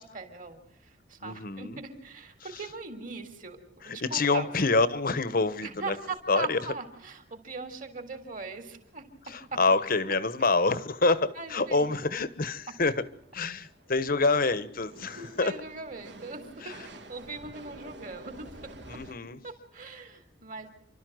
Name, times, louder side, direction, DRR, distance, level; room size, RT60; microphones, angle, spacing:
voice 1, 0.0-4.5 5.6-9.1 9.5-9.6 11.4-11.9 14.3-14.4 15.2-18.5 19.4-20.7, right 3 dB, 45° right, 3.4 m, -40 dB
voice 2, 1.2-1.8 3.8-6.0 6.3-6.6 9.3-12.9 13.3-15.5 16.6-16.7 18.9-19.4, left 3 dB, 50° left, 1.2 m, -27 dB
sound 1, 6.2-6.3 9.3-9.4 9.9-19.1, right 1 dB, 70° right, 2.6 m, -51 dB
29.0 x 13.0 x 7.9 m
head